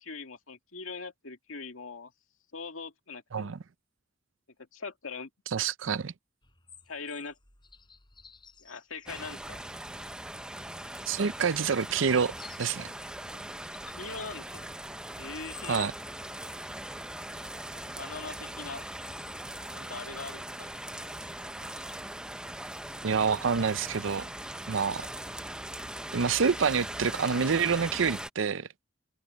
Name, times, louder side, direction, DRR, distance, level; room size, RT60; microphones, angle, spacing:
voice 1, 0.0-2.1 2.5-3.5 4.7-5.3 6.9-7.3 8.6-9.6 13.3-13.4 14.0-14.7 15.2-15.9 17.7-18.9 19.7-20.7, left 4 dB, 90° left, 2.0 m, -41 dB
voice 2, 5.5-6.1 11.1-12.9 15.7-15.9 23.0-24.3 24.7-25.1 26.1-28.7, right 6 dB, 70° right, 0.6 m, -27 dB
sound 1, 6.4-10.0 10.6-13.0 13.5-14.9 15.2-16.7 18.6-20.4 20.6-22.0 22.6-22.7, left 6 dB, 25° left, 5.3 m, -54 dB
sound 2, 9.1-28.3, right 1 dB, 5° right, 0.5 m, -40 dB
open air
head